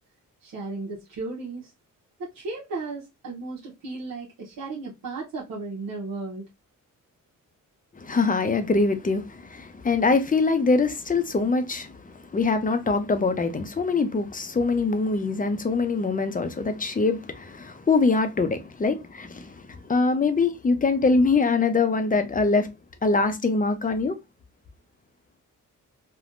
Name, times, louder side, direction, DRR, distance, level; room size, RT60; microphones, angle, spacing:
voice 1, 0.4-1.7 2.2-6.5, right 3 dB, 75° right, 0.9 m, -35 dB
voice 2, 7.9-22.7 23.0-24.2, left 3 dB, 25° left, 0.6 m, -23 dB
3.4 x 2.2 x 2.5 m
cardioid pair, 80°, 34 cm